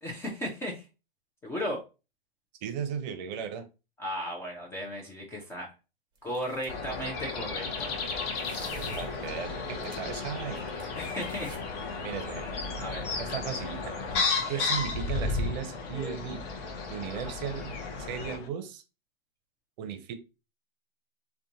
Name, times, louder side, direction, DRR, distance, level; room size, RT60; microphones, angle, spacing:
voice 1, 0.0-0.9 1.4-1.8 4.0-5.7 6.2-8.0 10.9-12.0 12.3-13.1 14.4-14.6 17.1-17.3, equal, 10° left, -2 dB, 0.3 m, -36 dB
voice 2, 2.6-3.7 8.7-10.6 12.0-12.4 13.2-14.0 14.5-16.4 16.9-18.8 19.8-20.1, right 8 dB, 45° right, 8 dB, 0.6 m, -36 dB
sound 1, 6.2-6.9 8.0-10.2 10.5-11.6, right 3 dB, 15° right, 0.8 m, -49 dB
sound 2, 6.7-18.4, left 4 dB, 35° left, 0.7 m, -33 dB
sound 3, 7.7-18.5, left 4 dB, 75° left, 0.7 m, -48 dB
2.5 x 2.2 x 2.7 m, 0.30 s
hypercardioid pair, 120°, 30 cm